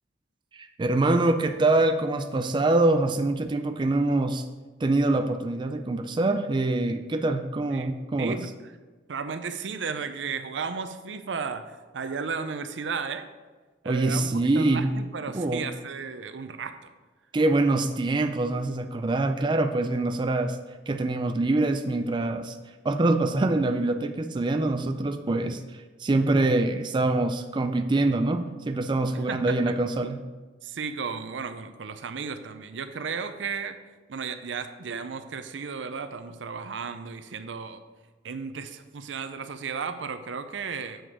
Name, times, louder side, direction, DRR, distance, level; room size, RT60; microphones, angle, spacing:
voice 1, 0.5-4.4 4.8-8.3 13.9-14.9 15.3-15.6 17.3-20.6 20.9-22.6 22.8-30.2, right 2 dB, 25° right, 7 dB, 0.4 m, -24 dB
voice 2, 8.2-8.5 9.1-13.3 13.8-16.9 29.3-29.5 30.6-33.8 34.1-37.8 38.2-41.0, right 5 dB, 85° right, 10 dB, 0.6 m, -34 dB
7.5 x 5.0 x 4.8 m, 1.3 s
head